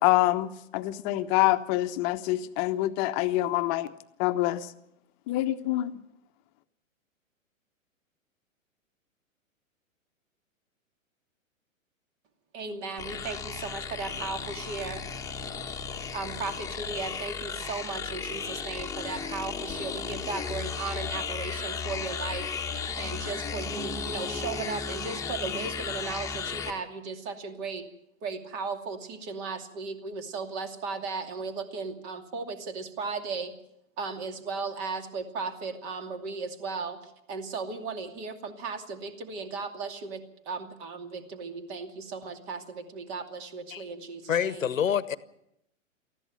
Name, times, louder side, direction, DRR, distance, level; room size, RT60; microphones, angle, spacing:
voice 1, 0.0-3.9 4.2-4.7 5.3-5.9, left 16 dB, 30° left, 1.1 m, -26 dB
voice 2, 12.5-15.0 16.1-22.5 23.0-27.9 28.2-33.5 34.0-37.0 37.3-44.7, right 4 dB, 40° right, 2.7 m, -36 dB
sound 1, 13.0-26.7, left 5 dB, 10° left, 1.4 m, -35 dB
voice 3, 44.3-45.2, left 8 dB, 70° left, 1.1 m, -27 dB
19.5 x 14.5 x 9.3 m
figure-of-eight pair, 110°, 40 cm